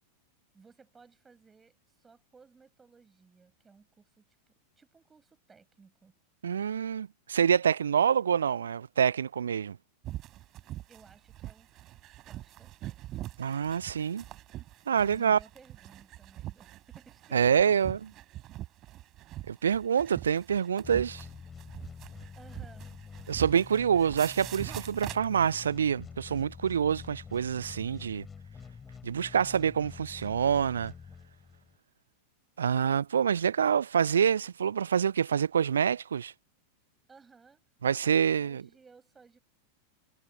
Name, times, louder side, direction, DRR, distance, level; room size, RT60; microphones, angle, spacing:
voice 1, 0.5-6.1 10.9-11.7 12.2-13.0 15.0-18.0 22.4-22.9 37.1-37.6 37.9-39.4, right 5 dB, 15° right, 5.6 m, -57 dB
voice 2, 6.4-9.8 13.4-14.2 14.9-15.4 17.3-18.0 19.5-21.2 23.3-28.3 29.0-30.9 32.6-36.3 37.8-38.6, right 8 dB, 70° right, 0.3 m, -26 dB
sound 1, 10.0-25.6, right 15 dB, 35° right, 3.6 m, -43 dB
sound 2, 20.8-31.8, left 6 dB, 15° left, 5.9 m, -47 dB
figure-of-eight pair, 90°, 0 cm